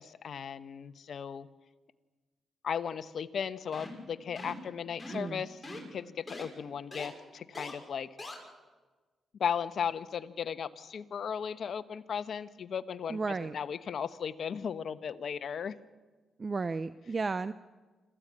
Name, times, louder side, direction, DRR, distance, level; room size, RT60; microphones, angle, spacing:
voice 1, 0.0-1.5 2.6-5.6 5.9-8.1 9.4-13.2 13.5-15.8, left 7 dB, 65° left, 12 dB, 1.0 m, -36 dB
sound 1, 3.7-4.0 4.4-4.6 5.0-5.3 5.6-5.8 6.3-6.4 6.9-7.1 7.5-7.7 8.2-8.3, left 2 dB, 15° left, 6.2 m, -42 dB
voice 2, 5.1-5.4 13.1-13.5 16.4-17.5, right 4 dB, 40° right, 14 dB, 0.6 m, -33 dB
25.5 x 15.0 x 8.7 m, 1.3 s
cardioid pair, 65°, 0 cm